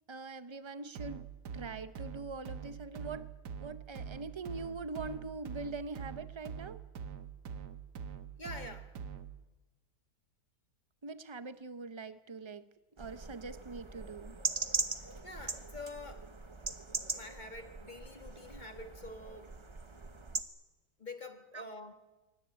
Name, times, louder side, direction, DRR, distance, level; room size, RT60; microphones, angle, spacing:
voice 1, 0.1-1.2 1.5-3.3 3.6-6.8 11.0-12.6 13.0-14.4 21.5-21.7, right 3 dB, 45° right, 12 dB, 0.3 m, -43 dB
sound 1, 0.9-9.4, right 7 dB, 80° right, 1.7 m, -45 dB
voice 2, 8.4-8.9 15.2-16.3 17.1-19.5 21.0-21.9, left 2 dB, 30° left, 7 dB, 1.6 m, -46 dB
sound 2, 13.0-20.4, right 3 dB, 25° right, 0.8 m, -40 dB
24.0 x 18.0 x 9.5 m, 1.2 s
omnidirectional pair, 1.8 m